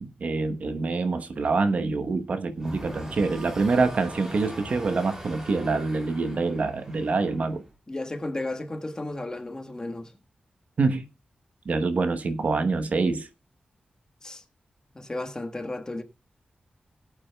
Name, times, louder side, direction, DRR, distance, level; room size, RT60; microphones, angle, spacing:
voice 1, 0.0-7.6 10.8-11.1 11.7-13.3, right 3 dB, 60° right, 1.0 m, -26 dB
sound 1, 2.6-7.7, equal, 20° right, 2.8 m, -41 dB
voice 2, 7.9-10.1 14.2-14.4 14.9-16.0, left 2 dB, 25° left, 1.5 m, -33 dB
18.5 x 8.4 x 2.3 m
wide cardioid pair, 95°, 3 cm